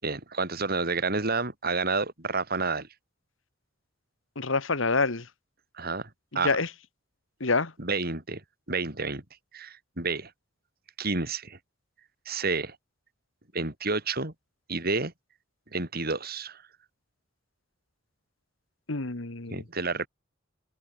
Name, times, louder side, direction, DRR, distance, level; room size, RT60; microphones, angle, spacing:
voice 1, 0.0-2.9 5.8-6.1 6.3-6.6 7.8-8.4 8.7-9.2 9.5-10.3 11.0-11.6 12.3-12.8 13.5-14.3 14.7-15.1 15.7-16.6 19.5-20.1, right 3 dB, 50° right, 4.7 m, -29 dB
voice 2, 4.3-5.2 6.4-6.7 7.4-7.7 18.9-19.6, left 3 dB, 80° left, 1.8 m, -26 dB
head